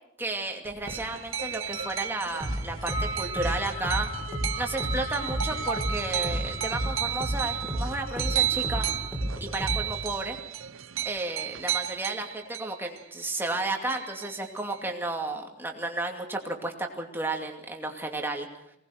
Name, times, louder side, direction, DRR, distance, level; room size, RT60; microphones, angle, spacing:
voice 1, 0.2-4.1 4.6-8.9 9.4-10.4 11.0-18.5, right 2 dB, 10° right, 2 dB, 2.5 m, -33 dB
sound 1, 0.6-9.1, left 1 dB, 50° left, 2.7 m, -40 dB
sound 2, 0.8-13.6 13.9-14.9, right 10 dB, 85° right, 0.9 m, -33 dB
sound 3, 2.4-10.1, equal, 10° left, 5.0 m, -33 dB
23.5 x 19.0 x 6.5 m, 0.81 s
head